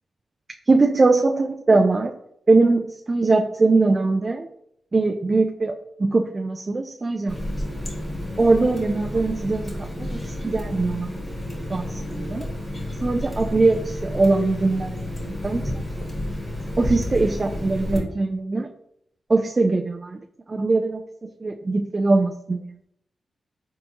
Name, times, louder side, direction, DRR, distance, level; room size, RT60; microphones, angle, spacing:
voice 1, 0.7-2.1 2.5-4.5 4.9-7.4 8.4-11.2 11.7-12.5 13.0-15.0 15.2-15.7 16.8-18.7 19.3-20.2 20.5-22.7, right 3 dB, 40° right, 4 dB, 0.3 m, -21 dB
Water tap faucet, 7.3-18.0, left 1 dB, 30° left, 1.5 m, -31 dB
4.0 x 3.5 x 2.8 m, 0.73 s
cardioid pair, 60°, 0 cm